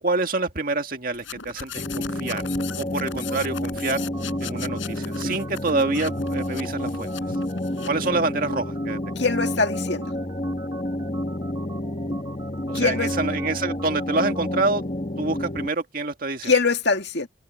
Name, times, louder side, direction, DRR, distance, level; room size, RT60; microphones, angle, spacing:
voice 1, 0.0-2.4 2.8-4.0 4.4-7.1 7.8-9.0 12.7-14.8 15.2-16.5, right 3 dB, 45° right, 2.0 m, -27 dB
sound 1, 1.1-8.1, left 6 dB, 80° left, 6.0 m, -38 dB
sound 2, 1.7-15.7, left 1 dB, 30° left, 1.4 m, -29 dB
sound 3, 4.0-14.6, right 4 dB, 20° right, 3.4 m, -45 dB
voice 2, 9.2-10.0 12.7-13.1 16.4-17.3, left 4 dB, 60° left, 2.1 m, -22 dB
head